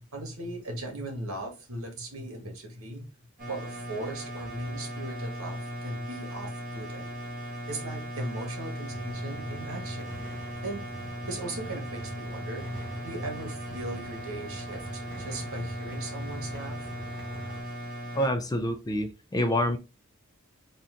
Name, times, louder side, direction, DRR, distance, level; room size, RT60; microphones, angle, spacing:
voice 1, 0.1-3.1 3.5-7.1 7.7-10.3 10.6-10.8 11.2-16.8, right 1 dB, 80° right, 1.5 m, -38 dB
sound 1, 3.4-18.3, equal, 40° right, 1.4 m, -38 dB
sound 2, 8.9-17.6, right 1 dB, 15° right, 1.3 m, -43 dB
voice 2, 18.1-19.8, left 1 dB, 20° left, 0.4 m, -27 dB
4.2 x 2.5 x 3.7 m
head